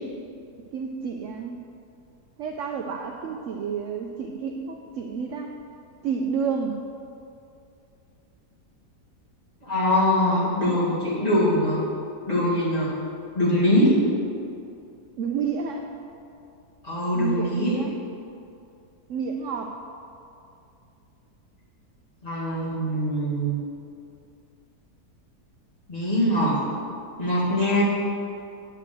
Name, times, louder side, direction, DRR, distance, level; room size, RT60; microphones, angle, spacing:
voice 1, 0.7-1.6 2.4-5.5 6.0-6.8 15.2-15.9 17.1-17.9 19.1-19.8, right 6 dB, 65° right, 3 dB, 0.8 m, -30 dB
voice 2, 9.6-11.8 12.3-13.0 13.3-14.1 16.8-17.8 22.2-23.6 25.9-26.7 27.2-27.8, equal, 25° left, -8 dB, 2.3 m, -22 dB
9.0 x 4.5 x 7.5 m, 2.6 s
omnidirectional pair, 1.7 m